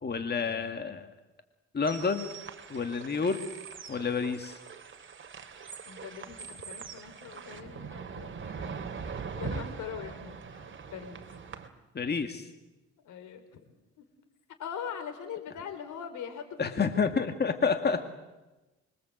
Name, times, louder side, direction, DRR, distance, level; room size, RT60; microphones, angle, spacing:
voice 1, 0.0-1.1 1.7-2.3 2.7-3.4 3.9-4.6 11.9-12.5 16.6-18.0, left 5 dB, 35° left, 7 dB, 2.2 m, -29 dB
sound 1, 1.8-11.7, right 5 dB, 40° right, 3.0 m, -42 dB
voice 2, 3.2-3.5 5.8-10.5 10.9-11.2 13.0-13.6 14.0-14.1 14.6-16.9, left 7 dB, 80° left, 8 dB, 4.3 m, -42 dB
26.0 x 23.5 x 8.0 m, 1.1 s
cardioid pair, 90°, 30 cm